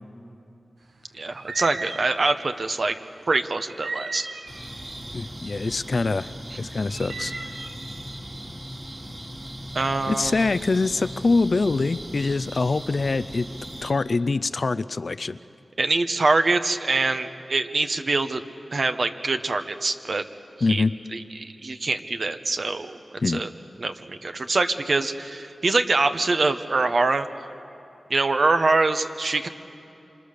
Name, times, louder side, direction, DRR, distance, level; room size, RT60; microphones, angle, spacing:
voice 1, 1.1-3.0 3.3-4.3 9.7-10.4 15.8-18.4 18.7-20.2 20.7-20.8 21.1-23.0 23.3-23.5 23.8-27.3 28.1-29.5, right 3 dB, 60° right, 8 dB, 1.1 m, -24 dB
sound 1, 1.4-2.3 3.7-4.8 6.9-7.7, right 3 dB, 85° right, 1.4 m, -35 dB
sound 2, 4.5-13.9, equal, 35° right, 3.3 m, -38 dB
voice 2, 5.1-6.3 6.6-7.3 10.1-13.5 13.8-15.4 20.6-20.9 23.2-23.4, left 3 dB, 55° left, 15 dB, 0.5 m, -24 dB
26.5 x 26.0 x 6.7 m, 2.8 s
wide cardioid pair, 80°, 0 cm